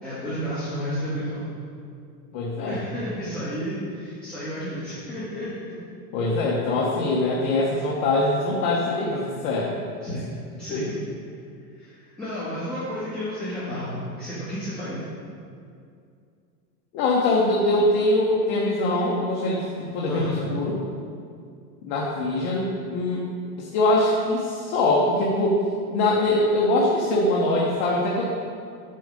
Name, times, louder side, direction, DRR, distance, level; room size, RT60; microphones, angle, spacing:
voice 1, 0.0-1.4 2.7-5.5 10.0-11.0 11.8-15.0 20.0-20.5, equal, ahead, -16 dB, 2.4 m, -31 dB
voice 2, 2.3-2.8 6.1-9.8 10.7-10.8 16.9-20.8 21.8-23.2 23.6-25.6 25.9-28.2, left 2 dB, 40° left, -3 dB, 1.1 m, -23 dB
9.0 x 4.8 x 6.6 m, 2.3 s
supercardioid pair, 155°, 50 cm